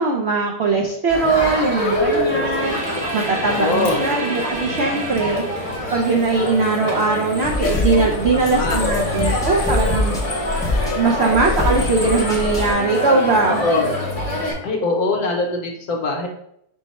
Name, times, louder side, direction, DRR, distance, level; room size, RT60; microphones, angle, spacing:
voice 1, 0.0-5.4 5.9-10.1 10.9-13.6, right 3 dB, 80° right, 0 dB, 0.5 m, -20 dB
Crowd, 1.1-14.5, left 1 dB, 40° left, 0.8 m, -25 dB
sound 1, 2.6-8.5, right 2 dB, 50° right, 1.4 m, -33 dB
voice 2, 3.5-4.2 8.3-8.8 13.5-14.1 14.6-16.3, left 3 dB, 70° left, 2 dB, 1.2 m, -22 dB
sound 2, 7.5-12.7, left 2 dB, 5° left, 0.4 m, -24 dB
5.6 x 2.1 x 4.0 m, 0.75 s
omnidirectional pair, 1.7 m